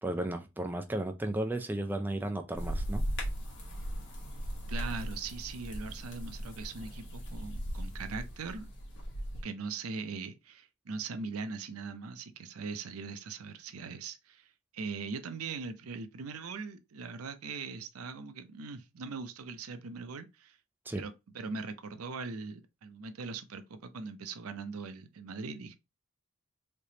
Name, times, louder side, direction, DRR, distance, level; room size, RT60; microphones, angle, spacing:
voice 1, 0.0-3.1 20.9-21.0, right 1 dB, 10° right, 0.3 m, -34 dB
sound 1, 2.6-9.4, equal, 60° left, 1.2 m, -38 dB
voice 2, 4.7-8.7 9.4-20.6 21.0-25.7, right 4 dB, 85° right, 0.5 m, -41 dB
3.3 x 2.9 x 2.8 m
head